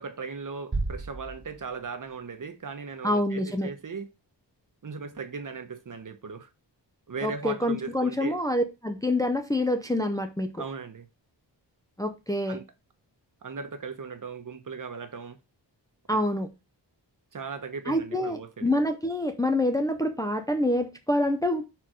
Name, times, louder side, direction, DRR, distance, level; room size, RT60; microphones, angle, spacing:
voice 1, 0.0-4.1 4.8-6.5 7.1-8.4 10.6-11.1 12.5-12.6 13.4-15.4 16.1-16.2 17.3-18.7, right 5 dB, 45° right, 1.0 m, -37 dB
sound 1, 0.7-2.5, right 3 dB, 30° right, 1.2 m, -34 dB
voice 2, 3.0-3.7 7.2-10.5 12.0-12.6 16.1-16.5 17.9-21.7, left 1 dB, 10° left, 0.5 m, -26 dB
5.1 x 4.6 x 6.2 m
wide cardioid pair, 155°, 43 cm